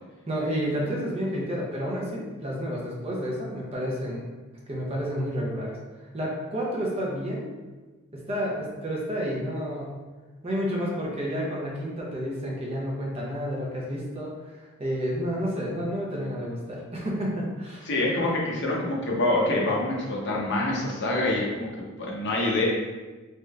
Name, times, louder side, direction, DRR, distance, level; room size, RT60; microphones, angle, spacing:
voice 1, 0.3-4.2 4.7-5.7 6.1-7.5 8.1-9.9 10.4-17.9, equal, 30° right, -3 dB, 0.6 m, -30 dB
voice 2, 17.9-21.7 22.0-22.7, left 2 dB, 55° left, -3 dB, 0.7 m, -26 dB
3.2 x 2.8 x 2.3 m, 1.3 s
head